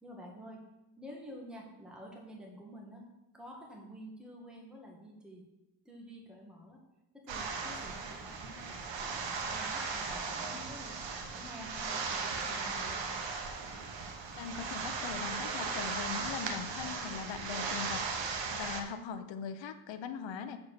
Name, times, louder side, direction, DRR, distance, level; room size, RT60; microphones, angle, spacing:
voice 1, 0.0-0.6 1.0-3.1 3.3-5.5 5.8-6.8 7.2-13.2, equal, ahead, -2 dB, 1.8 m, -49 dB
sound 1, 7.3-18.8, right 4 dB, 80° right, 1.2 m, -37 dB
voice 2, 14.4-20.6, left 7 dB, 85° left, 9 dB, 0.8 m, -41 dB
6.9 x 4.7 x 6.6 m, 0.93 s
cardioid pair, 95°, 44 cm